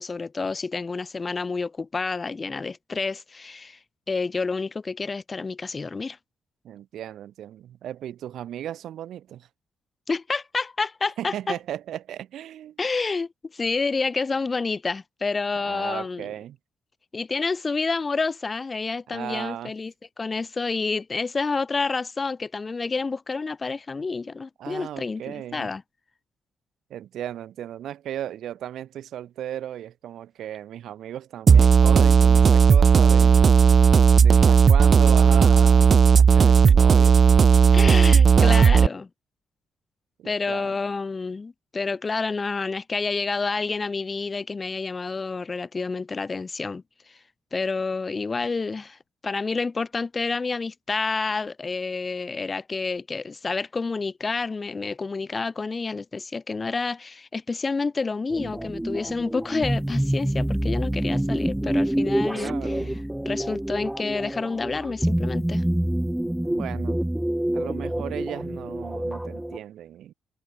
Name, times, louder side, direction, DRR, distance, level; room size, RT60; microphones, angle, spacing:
voice 1, 0.0-3.8 4.1-6.2 10.1-11.6 12.8-16.3 17.1-19.9 20.2-25.8 37.7-39.1 40.2-46.8 47.1-47.2 47.5-62.7 63.3-65.6, left 4 dB, 30° left, 2.2 m, -29 dB
voice 2, 6.6-9.5 11.2-12.8 15.5-16.6 19.1-19.7 24.6-25.7 26.9-33.4 34.1-37.2 38.1-38.8 40.2-40.8 62.3-63.1 66.4-67.0 67.5-70.1, right 11 dB, 80° right, 2.2 m, -36 dB
sound 1, 31.5-38.9, right 6 dB, 50° right, 0.7 m, -15 dB
sound 2, 58.3-69.6, right 1 dB, 5° right, 1.1 m, -27 dB
cardioid pair, 85°, 0 cm